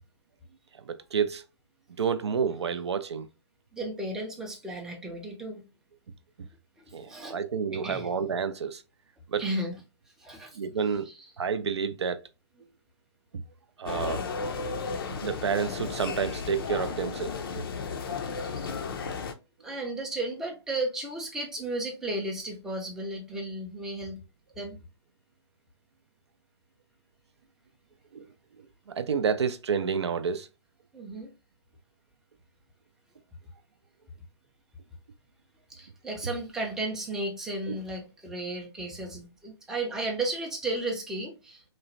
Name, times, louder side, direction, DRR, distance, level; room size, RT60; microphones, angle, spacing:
voice 1, 0.8-1.4 2.0-3.3 6.9-8.8 9.3-9.4 10.5-11.1 11.4-12.2 13.8-14.2 15.2-17.3 28.1-28.3 29.0-30.5 37.7-37.8, right 6 dB, 70° right, 0.4 m, -29 dB
voice 2, 3.7-5.6 6.9-7.4 7.7-8.1 9.4-9.8 10.2-10.6 11.1-11.2 18.5-18.8 19.6-24.2 24.6-24.8 30.9-31.3 35.7-41.6, right 2 dB, 5° right, 0.4 m, -34 dB
sound 1, 13.9-19.3, left 5 dB, 50° left, 0.5 m, -34 dB
3.0 x 2.1 x 2.5 m
figure-of-eight pair, 130°, 15 cm